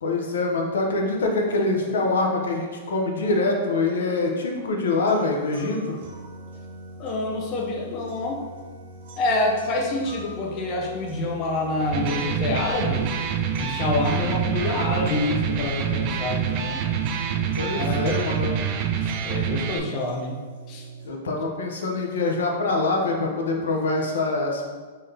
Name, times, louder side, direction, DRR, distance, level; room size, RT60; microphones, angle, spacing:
voice 1, 0.0-6.0 17.6-18.6 21.0-24.6, left 2 dB, 85° left, 1 dB, 0.7 m, -24 dB
sound 1, 5.1-21.1, right 2 dB, 65° right, 0.9 m, -41 dB
voice 2, 7.0-8.4 9.2-13.1 13.6-16.9 17.7-18.2 19.0-20.4 20.7-20.8, left 2 dB, 35° left, 0 dB, 0.5 m, -27 dB
sound 2, 11.8-16.9, left 1 dB, 15° right, 1.4 m, -43 dB
Electric guitar, 11.8-19.8, right 8 dB, 40° right, 0.3 m, -26 dB
3.9 x 2.7 x 3.3 m, 1.4 s
hypercardioid pair, 145°, 0 cm